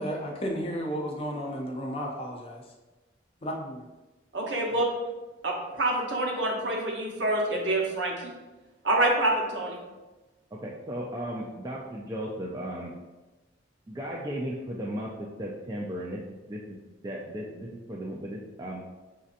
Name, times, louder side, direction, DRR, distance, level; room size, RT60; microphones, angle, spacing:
voice 1, 0.0-2.6 3.4-3.8, equal, 30° left, 1 dB, 0.5 m, -33 dB
voice 2, 4.3-4.9 5.4-8.3 8.8-9.8, right 1 dB, 75° right, -1 dB, 0.9 m, -27 dB
voice 3, 10.5-12.9 13.9-18.8, equal, 20° right, -3 dB, 0.4 m, -36 dB
6.1 x 2.7 x 2.5 m, 1.1 s
head